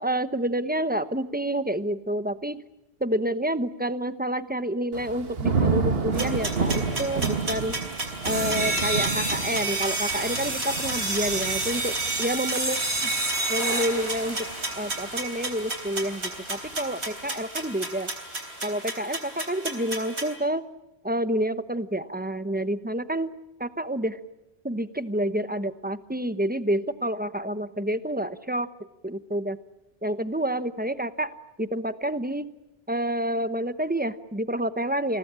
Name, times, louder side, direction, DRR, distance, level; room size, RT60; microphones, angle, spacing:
voice 1, 0.0-2.6 3.0-7.8 8.2-11.9 12.2-13.1 13.5-14.4 14.8-18.1 18.6-20.6 21.0-23.3 23.6-24.2 24.6-28.7 29.0-29.6 30.0-32.4 32.9-35.2, right 1 dB, 10° right, 12 dB, 0.9 m, -28 dB
Thunder / Rain, 4.9-15.9 16.3-16.7, right 5 dB, 65° right, 1.7 m, -31 dB
sound 1, 6.1-20.3, right 2 dB, 85° right, 3.8 m, -30 dB
29.0 x 21.0 x 8.8 m, 0.95 s
omnidirectional pair, 1.1 m